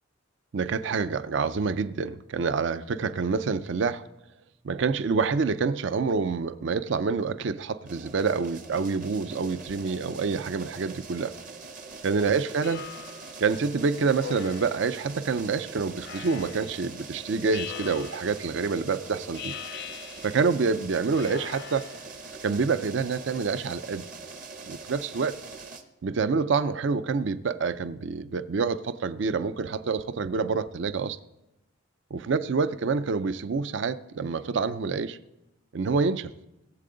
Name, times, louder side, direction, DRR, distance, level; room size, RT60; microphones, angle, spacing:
voice 1, 0.5-4.1 4.6-11.3 12.0-12.8 13.4-19.5 20.2-21.9 22.4-24.1 24.6-25.4 26.0-31.2 32.1-35.2 35.7-36.3, right 4 dB, 60° right, 0.4 m, -27 dB
sound 1, 7.9-25.8, right 4 dB, 40° right, 0.9 m, -43 dB
Speech synthesizer, 12.6-13.4 14.2-15.0 16.0-16.8 17.5-18.5 19.3-20.6 21.1-22.2, left 9 dB, 50° left, 0.4 m, -41 dB
19.0 x 7.7 x 3.8 m
head